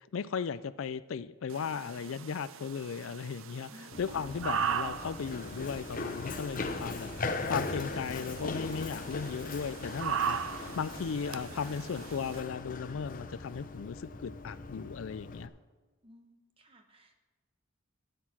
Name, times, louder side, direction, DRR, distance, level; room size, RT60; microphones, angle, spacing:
voice 1, 0.0-3.7 4.0-10.4 10.8-15.5, left 6 dB, 80° left, 17 dB, 0.4 m, -36 dB
sound 1, 1.5-12.4, right 7 dB, 80° right, 0.5 m, -39 dB
voice 2, 3.7-4.6 16.0-17.2, right 1 dB, 25° right, 5 dB, 1.1 m, -55 dB
Run, 3.9-15.5, left 3 dB, 40° left, 0.7 m, -39 dB
13.5 x 8.3 x 6.0 m, 1.2 s
head